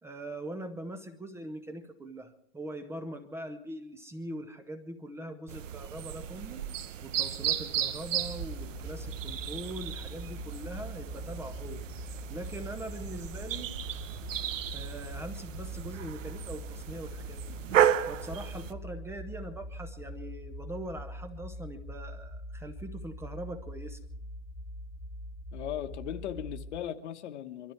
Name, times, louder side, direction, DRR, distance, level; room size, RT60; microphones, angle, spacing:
voice 1, 0.0-6.6 7.0-13.7 14.7-17.6 18.0-24.0, right 1 dB, 5° right, 7 dB, 0.7 m, -42 dB
sound 1, 5.5-18.7, right 10 dB, 85° right, 1.1 m, -34 dB
sound 2, 8.2-26.7, left 1 dB, 30° right, 3.7 m, -43 dB
voice 2, 25.5-27.7, left 11 dB, 65° left, 9 dB, 1.3 m, -38 dB
23.5 x 13.0 x 4.6 m, 0.71 s
hypercardioid pair, 145°, 37 cm